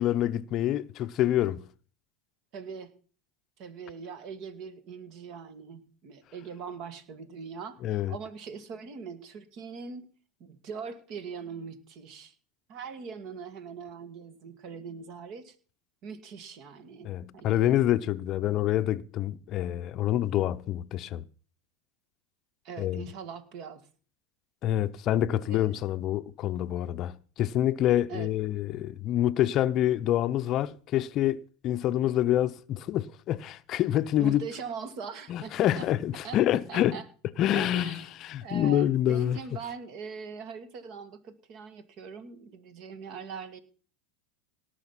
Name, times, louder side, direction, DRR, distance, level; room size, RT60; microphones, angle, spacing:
voice 1, 0.0-1.6 7.8-8.2 17.0-21.2 22.8-23.1 24.6-34.4 35.3-37.0 37.4-39.4, left 12 dB, 45° left, 0.6 m, -27 dB
voice 2, 2.5-2.9 3.6-10.1 10.4-12.3 12.7-15.6 16.0-17.8 22.6-23.9 25.4-25.8 28.1-28.3 34.2-35.9 36.2-36.4 36.7-37.1 37.5-38.0 38.4-43.6, right 6 dB, 50° right, 2.1 m, -41 dB
18.0 x 6.4 x 5.8 m
hypercardioid pair, 105°, 0 cm